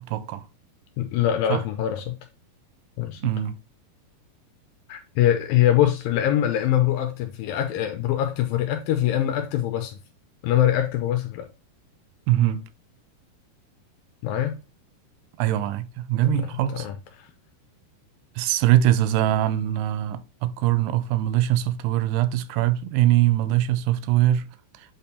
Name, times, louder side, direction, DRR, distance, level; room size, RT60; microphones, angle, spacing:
voice 1, 0.1-0.4 1.5-1.6 3.2-3.6 12.3-12.6 15.4-16.9 18.4-24.4, right 13 dB, 90° right, 2.7 m, -22 dB
voice 2, 1.0-2.2 3.0-3.3 4.9-10.0 10.4-11.5 14.2-14.6 16.2-17.3, left 11 dB, 80° left, 2.1 m, -23 dB
8.4 x 4.3 x 2.7 m
omnidirectional pair, 4.6 m